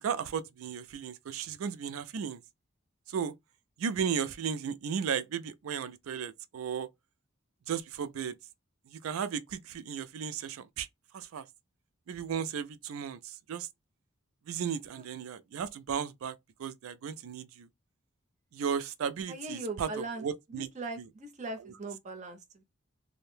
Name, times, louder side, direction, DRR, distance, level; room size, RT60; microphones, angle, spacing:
voice 1, 0.0-2.4 3.1-3.3 3.8-6.9 7.7-8.4 8.9-10.9 11.1-11.5 12.1-13.7 14.5-17.7 18.5-20.7 21.0-21.1 21.6-21.7, right 7 dB, 90° right, 0.4 m, -35 dB
voice 2, 19.3-22.6, right 2 dB, 35° right, 0.6 m, -40 dB
2.6 x 2.1 x 3.1 m
head